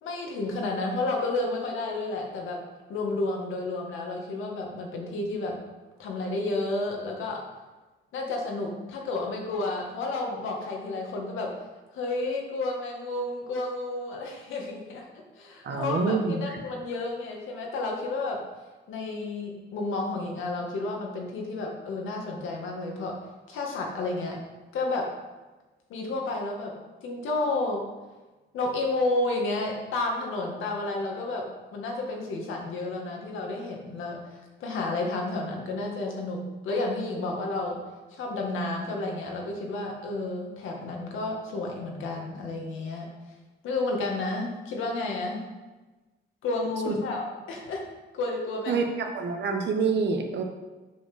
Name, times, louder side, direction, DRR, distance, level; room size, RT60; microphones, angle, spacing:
voice 1, 0.0-2.6 2.9-5.6 6.0-7.4 8.1-11.5 11.9-15.1 15.4-18.4 18.9-23.2 23.5-24.4 24.7-25.1 25.9-26.7 27.0-27.9 28.5-34.2 34.6-37.8 38.1-43.1 43.6-45.4 46.4-48.9, left 2 dB, 85° left, 0 dB, 1.9 m, -31 dB
voice 2, 15.6-16.6 46.8-47.0 48.7-50.4, right 4 dB, 60° right, 4 dB, 1.3 m, -27 dB
7.2 x 5.6 x 6.1 m, 1.2 s
cardioid pair, 90°, 20 cm